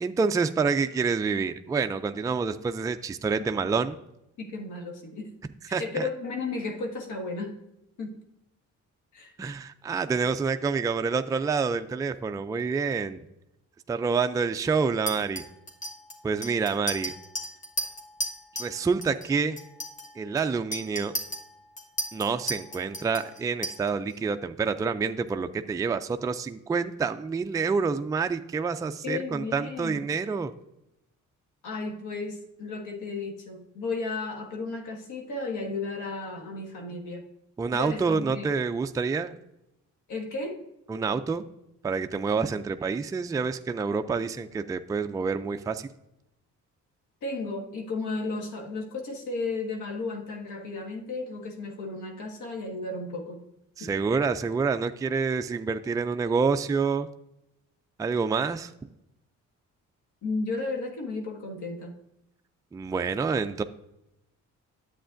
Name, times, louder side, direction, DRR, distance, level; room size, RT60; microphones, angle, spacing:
voice 1, 0.0-4.0 5.7-6.1 9.4-13.2 13.9-15.4 16.2-17.1 18.6-19.6 20.2-21.2 22.1-30.5 37.6-39.3 40.9-41.4 41.8-45.9 53.8-57.1 58.0-58.7 62.7-63.6, right 5 dB, 10° right, 8 dB, 0.3 m, -27 dB
voice 2, 4.4-5.3 5.7-7.6 8.0-8.1 9.1-9.3 29.0-30.0 31.6-37.2 37.7-38.5 40.1-40.6 47.2-53.4 53.8-53.9 60.2-61.9, left 3 dB, 75° left, 3 dB, 1.6 m, -34 dB
Chink clink, 15.1-18.7 19.0-19.3 19.6-24.1, equal, 25° left, 1.4 m, -35 dB
10.0 x 7.9 x 2.5 m, 0.86 s
cardioid pair, 90°, 30 cm